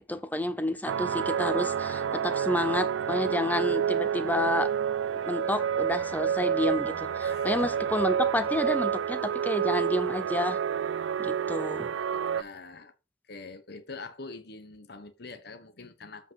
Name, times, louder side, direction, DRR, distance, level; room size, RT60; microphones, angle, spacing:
voice 1, 0.1-4.7 5.3-10.6 11.2-11.9, left 1 dB, 10° left, 0.7 m, -30 dB
sound 1, 0.9-12.4, right 8 dB, 85° right, 0.4 m, -29 dB
voice 2, 7.2-7.8 12.0-12.9 13.3-16.3, left 3 dB, 60° left, 1.3 m, -45 dB
7.8 x 5.4 x 4.7 m
head